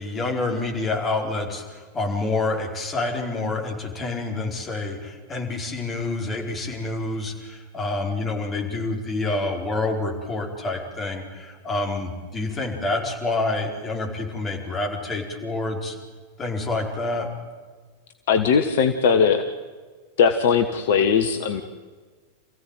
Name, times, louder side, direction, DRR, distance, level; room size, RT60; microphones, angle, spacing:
voice 1, 0.0-1.6 1.9-15.9 16.4-17.3, left 2 dB, 20° left, 0 dB, 4.9 m, -27 dB
voice 2, 18.3-19.4 20.2-21.6, left 6 dB, 55° left, 7 dB, 1.3 m, -19 dB
28.0 x 16.0 x 9.3 m, 1.5 s
figure-of-eight pair, 90°, 0 cm